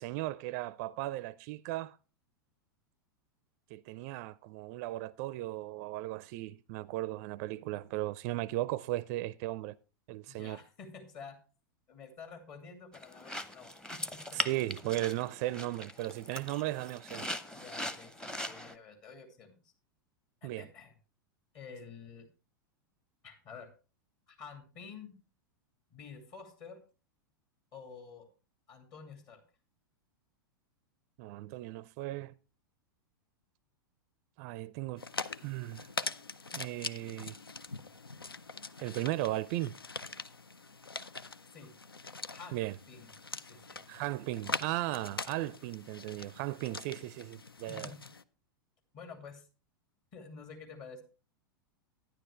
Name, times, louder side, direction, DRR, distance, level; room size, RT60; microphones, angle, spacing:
voice 1, 0.0-2.0 3.7-9.8 10.1-10.6 14.3-17.3 20.4-20.7 31.2-32.3 34.4-35.0 35.4-35.9 36.5-37.4 38.8-39.7 42.5-42.7 43.9-47.9, right 16 dB, 45° right, 0.4 m, -36 dB
voice 2, 10.3-11.4 11.9-14.4 17.5-19.7 20.4-20.9 21.5-22.3 23.2-23.7 24.3-25.1 25.9-26.8 27.7-28.3 28.7-29.4 41.5-41.7 42.3-42.6 42.9-43.1 43.4-43.8 47.7-48.0 48.9-49.5 50.1-51.0, left 5 dB, 45° left, 2.7 m, -49 dB
sound 1, 12.9-18.7, left 1 dB, 5° left, 0.8 m, -40 dB
sound 2, 35.0-48.2, left 4 dB, 90° left, 0.5 m, -43 dB
12.0 x 10.0 x 3.3 m
figure-of-eight pair, 95°, 12 cm